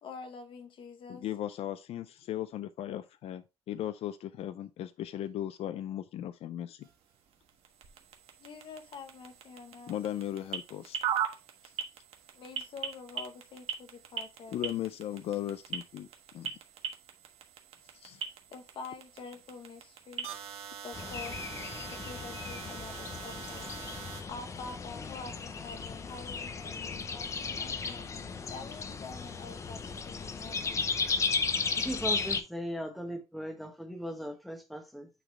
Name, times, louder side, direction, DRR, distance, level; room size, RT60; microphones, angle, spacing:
voice 1, 0.0-1.3 8.4-9.9 12.3-14.6 18.5-20.4 20.8-21.4 21.9-23.7 24.3-28.1 28.5-30.8, left 4 dB, 55° left, 1.1 m, -46 dB
voice 2, 1.1-6.9 9.9-11.0 11.6-11.7 14.5-16.1 16.3-16.5 17.9-18.2, left 12 dB, 70° left, 0.4 m, -37 dB
sound 1, 6.8-24.2, right 8 dB, 70° right, 1.3 m, -41 dB
sound 2, 20.9-32.4, left 4 dB, 30° left, 0.7 m, -35 dB
voice 3, 31.8-35.1, equal, ahead, 1.0 m, -38 dB
9.2 x 4.0 x 3.1 m
cardioid pair, 175°, 11 cm